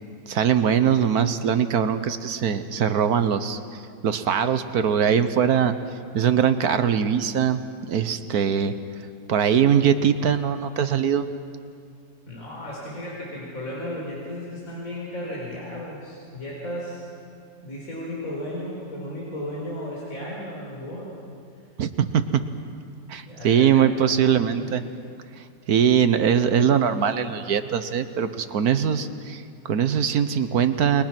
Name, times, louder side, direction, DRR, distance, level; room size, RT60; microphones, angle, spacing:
voice 1, 0.3-3.6 4.0-5.7 6.1-7.6 7.9-8.7 9.3-11.3 21.8-22.4 23.1-24.8 25.7-31.0, right 8 dB, 60° right, 11 dB, 1.3 m, -21 dB
voice 2, 12.3-17.0 17.6-21.1 23.2-24.8, left 1 dB, 45° left, -4 dB, 5.0 m, -35 dB
29.0 x 22.0 x 6.0 m, 2.3 s
omnidirectional pair, 2.0 m